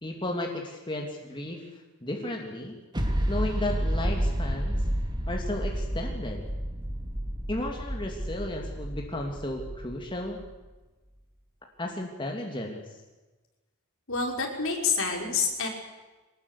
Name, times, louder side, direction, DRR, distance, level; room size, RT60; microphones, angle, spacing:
voice 1, 0.0-2.8 3.3-4.8 5.3-6.4 7.5-10.4 11.8-12.8, left 1 dB, 20° left, 1 dB, 2.5 m, -34 dB
sound 1, 2.9-10.5, equal, 20° right, 2.7 m, -30 dB
voice 2, 14.1-15.7, left 5 dB, 60° left, 1 dB, 5.3 m, -27 dB
24.0 x 20.0 x 8.3 m, 1.2 s
head